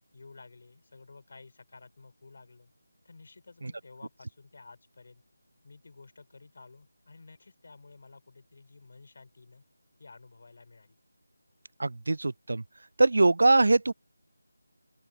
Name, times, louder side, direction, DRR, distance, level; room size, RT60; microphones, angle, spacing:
voice 1, 0.1-2.7 3.0-5.2 5.6-9.6 10.0-11.0, left 3 dB, 50° left, 5.6 m, -52 dB
voice 2, 11.8-12.6 13.0-13.9, right 2 dB, 60° right, 0.3 m, -22 dB
open air
figure-of-eight pair, 160°, 0 cm